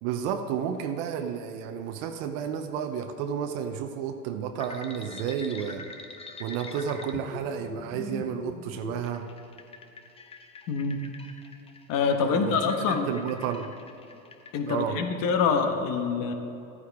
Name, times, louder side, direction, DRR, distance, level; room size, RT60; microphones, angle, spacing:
voice 1, 0.0-5.8 6.4-9.3 12.2-13.7 14.7-15.0, right 8 dB, 60° right, 6 dB, 0.8 m, -32 dB
sound 1, 4.6-14.8, left 3 dB, 15° left, 0.7 m, -43 dB
voice 2, 10.7-11.0 11.9-13.1 14.5-16.3, left 5 dB, 50° left, 5 dB, 1.3 m, -25 dB
13.5 x 9.5 x 3.6 m, 2.7 s
supercardioid pair, 110°, 44 cm